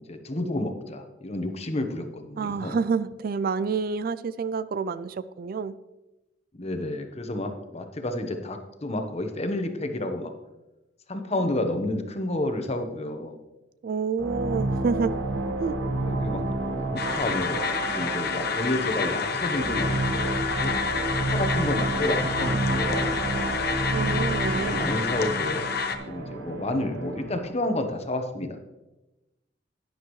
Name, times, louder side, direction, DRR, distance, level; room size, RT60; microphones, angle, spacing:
voice 1, 0.1-2.8 6.6-10.3 11.1-13.4 16.0-16.4 16.8-20.7 21.1-23.1 24.0-24.3 24.7-25.7 26.1-28.6, left 1 dB, 35° left, 6 dB, 1.1 m, -30 dB
voice 2, 2.4-5.7 13.8-15.1 15.6-15.8 23.9-24.9, right 5 dB, 55° right, 15 dB, 0.4 m, -28 dB
sound 1, 14.2-27.5, right 2 dB, 85° right, 1.4 m, -30 dB
sound 2, 17.0-26.0, left 6 dB, 60° left, 0.9 m, -29 dB
11.5 x 9.9 x 3.2 m, 1.0 s
head